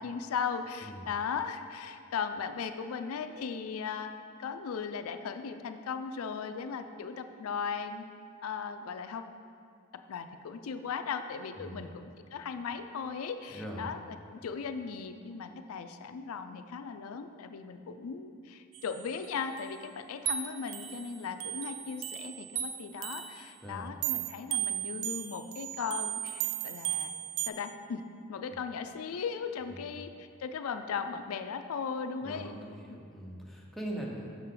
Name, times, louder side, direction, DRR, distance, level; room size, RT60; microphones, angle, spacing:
voice 1, 0.0-4.1 4.4-8.0 8.4-9.2 10.1-27.1 27.5-28.0 28.3-32.5 32.9-33.0, left 6 dB, 90° left, 8 dB, 0.4 m, -37 dB
voice 2, 11.6-11.9 13.5-13.9 23.6-24.0 32.2-34.3, right 1 dB, ahead, -3 dB, 0.7 m, -41 dB
sound 1, 18.7-19.3 19.6-19.7 20.3-23.4 24.0-27.5, right 11 dB, 70° right, 0.3 m, -35 dB
6.4 x 5.7 x 3.8 m, 2.3 s
head